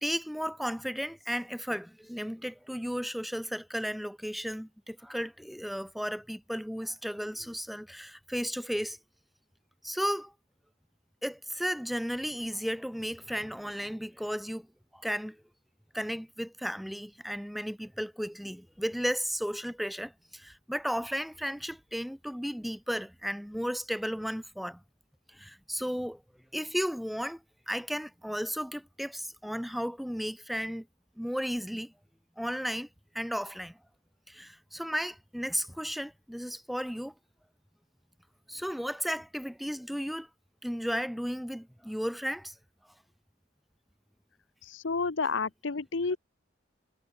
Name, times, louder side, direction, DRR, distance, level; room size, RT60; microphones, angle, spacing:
voice 1, 0.0-9.0 9.8-10.3 11.2-14.7 14.9-15.4 15.9-24.8 25.3-26.2 26.5-27.4 27.7-30.9 31.2-31.9 32.4-32.9 33.1-33.8 34.3-37.1 38.5-40.3 40.6-42.5, equal, ahead, 0.8 m, -34 dB
voice 2, 44.7-46.2, left 4 dB, 70° left, 0.8 m, -30 dB
head